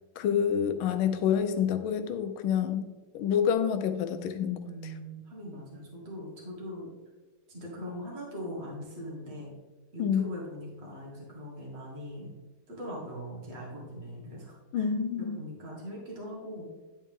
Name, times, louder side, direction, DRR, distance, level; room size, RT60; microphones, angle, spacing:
voice 1, 0.2-2.9 3.1-4.6 10.0-10.3 14.7-15.4, left 8 dB, 85° left, 9 dB, 1.5 m, -27 dB
voice 2, 4.6-6.9 7.5-9.5 9.9-12.3 12.7-16.7, equal, 30° right, -3 dB, 1.9 m, -41 dB
10.5 x 4.3 x 3.6 m, 1.2 s
omnidirectional pair, 2.2 m